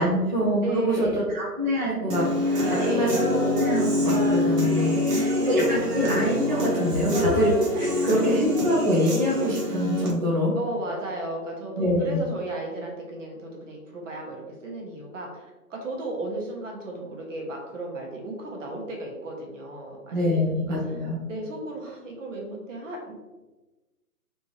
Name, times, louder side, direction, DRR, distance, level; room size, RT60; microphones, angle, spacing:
voice 1, 0.0-7.8 8.0-10.5 11.8-12.2 20.1-21.2, equal, 30° right, -6 dB, 0.5 m, -25 dB
voice 2, 0.6-1.2 2.7-3.2 4.7-6.1 7.7-8.2 10.5-20.5 20.8-21.0 21.3-23.1, right 2 dB, 55° right, 0 dB, 1.0 m, -34 dB
Human voice / Guitar, 2.1-10.1, left 1 dB, 75° right, 1.2 m, -25 dB
3.3 x 2.7 x 3.1 m, 1.1 s
hypercardioid pair, 145°, 46 cm